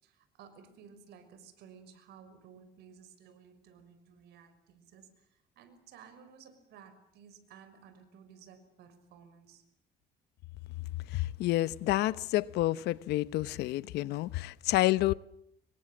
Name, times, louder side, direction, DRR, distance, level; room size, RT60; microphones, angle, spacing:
voice 1, 0.0-9.6, right 7 dB, 80° right, 6.1 m, -56 dB
voice 2, 11.1-15.1, left 16 dB, 85° left, 1.0 m, -29 dB
27.5 x 23.5 x 7.4 m
cardioid pair, 110°, 17 cm